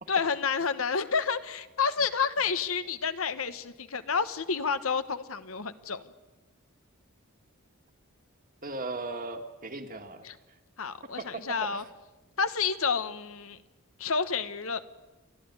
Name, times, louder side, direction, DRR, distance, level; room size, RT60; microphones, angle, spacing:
voice 1, 0.1-6.0 10.2-10.3 10.8-11.8 12.4-13.6 14.0-14.8, left 5 dB, 75° left, 11 dB, 1.2 m, -29 dB
voice 2, 8.6-10.3 11.2-11.9, right 3 dB, 40° right, 5 dB, 1.9 m, -37 dB
30.0 x 12.0 x 9.7 m, 1.1 s
head